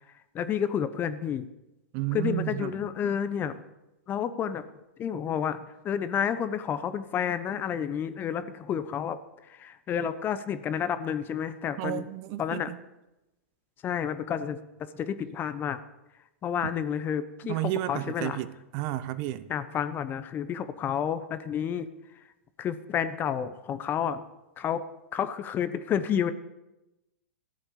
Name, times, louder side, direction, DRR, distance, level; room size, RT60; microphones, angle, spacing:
voice 1, 0.3-1.5 2.1-3.6 4.1-4.6 5.0-9.2 9.5-12.0 12.4-12.7 13.8-14.6 14.9-15.8 16.4-18.4 19.5-21.9 22.6-24.2 24.6-24.8 25.1-26.3, left 8 dB, 30° left, 1.1 m, -30 dB
voice 2, 1.9-2.8 11.8-12.8 16.6-16.7 17.4-19.5, right 15 dB, 45° right, 0.9 m, -32 dB
14.5 x 8.0 x 8.6 m
hypercardioid pair, 110°, 7 cm